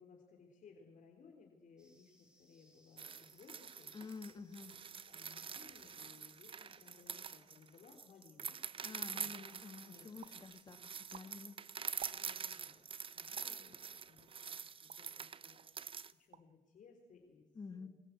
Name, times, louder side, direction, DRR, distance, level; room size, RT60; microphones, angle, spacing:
voice 1, 0.0-4.0 5.0-9.3 9.8-10.5 12.1-12.8 13.1-14.5 14.8-15.6 16.2-17.9, left 5 dB, 50° left, 2 dB, 3.7 m, -62 dB
sound 1, 1.8-16.3, equal, 5° right, 6.2 m, -75 dB
sound 2, 3.0-16.1, right 7 dB, 30° right, 0.8 m, -46 dB
voice 2, 3.9-4.8 8.8-11.6 17.5-17.9, left 4 dB, 25° left, 10 dB, 1.7 m, -50 dB
sound 3, 7.2-7.5 8.0-8.1 8.3-8.8 9.3-9.8 10.2-10.5 10.9-12.6 13.4-13.6 14.3-15.2 15.6-15.8 16.1-16.6 16.9-17.4, right 9 dB, 50° right, 1.1 m, -58 dB
25.0 x 21.5 x 8.2 m, 1.2 s
cardioid pair, 110°, 17 cm